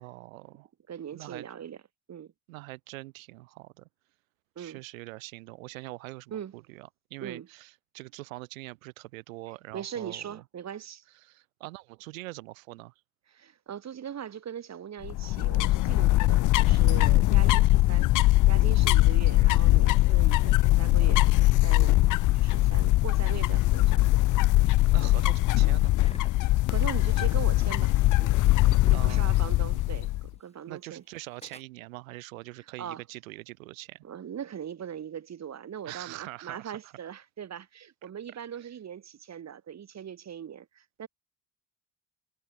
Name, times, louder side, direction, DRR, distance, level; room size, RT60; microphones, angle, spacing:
voice 1, 0.0-0.7 1.1-1.5 2.5-3.9 4.6-10.4 11.2-12.9 24.9-25.9 28.9-29.6 30.7-34.0 35.8-36.9 38.0-38.1 38.6-38.7, right 21 dB, 85° right, 2.2 m, -43 dB
voice 2, 0.9-1.8 2.1-2.3 4.6-4.8 6.3-6.5 7.2-7.5 9.7-11.0 13.3-18.1 18.5-22.0 22.3-24.0 26.4-28.4 28.9-31.0 32.8-33.0 34.0-41.1, right 8 dB, 40° right, 2.1 m, -40 dB
sound 1, 15.0-30.3, left 17 dB, 50° left, 0.6 m, -22 dB
Engine starting, 25.1-30.0 30.2-30.3 31.2-31.6, left 2 dB, 15° left, 5.7 m, -47 dB
hypercardioid pair, 65°, 40 cm